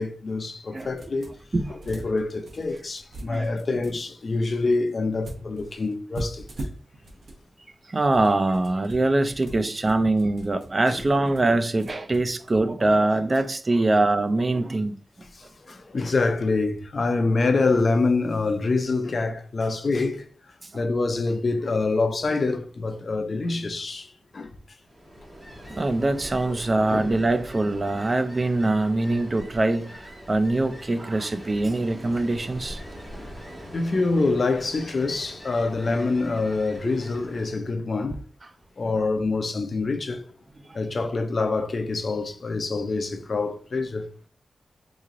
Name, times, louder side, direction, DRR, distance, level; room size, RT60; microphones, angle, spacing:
voice 1, 0.0-1.3 1.7-6.5 9.5-9.6 10.9-11.3 13.2-13.3 15.3-20.3 20.7-24.5 26.5-26.6 26.9-27.1 33.1-33.3 33.7-38.2 38.8-40.3 40.7-44.3, left 3 dB, 45° left, 0.5 m, -26 dB
sound 1, 1.0-1.5 1.8-3.9 5.2-7.4 7.9-12.2, right 1 dB, 75° right, 1.0 m, -40 dB
voice 2, 7.9-14.9 20.7-20.8 25.8-32.8, right 2 dB, 30° right, 0.3 m, -23 dB
Ocean, 24.8-37.6, equal, 15° right, 1.9 m, -43 dB
3.8 x 3.0 x 2.5 m
wide cardioid pair, 135°, 0 cm